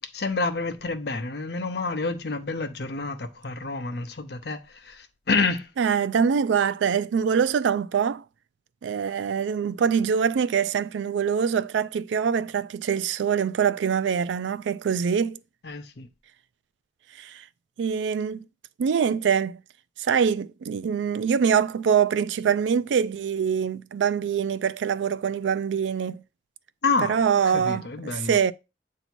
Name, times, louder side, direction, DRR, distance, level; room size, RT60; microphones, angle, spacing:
voice 1, 0.1-5.7 15.6-16.1 26.8-27.2 27.5-28.4, left 4 dB, 65° left, 0.7 m, -28 dB
voice 2, 5.8-8.2 8.8-15.4 17.2-17.4 17.8-18.4 18.8-19.6 20.0-26.2 27.1-28.5, right 7 dB, 85° right, 0.3 m, -24 dB
7.9 x 2.8 x 4.4 m
head